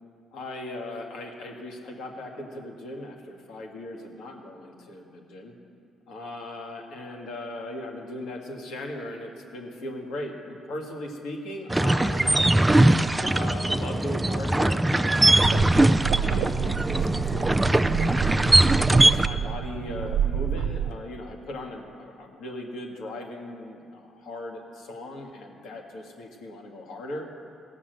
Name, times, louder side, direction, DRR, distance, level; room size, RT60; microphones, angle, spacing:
voice 1, 0.3-5.5 6.1-12.3 13.1-17.7 18.9-27.2, left 1 dB, 85° left, 1 dB, 1.8 m, -38 dB
sound 1, 11.7-19.3, right 1 dB, 10° right, 0.3 m, -21 dB
sound 2, 15.3-20.9, right 9 dB, 90° right, 0.4 m, -29 dB
17.0 x 6.1 x 7.9 m, 2.4 s
cardioid pair, 90°, 0 cm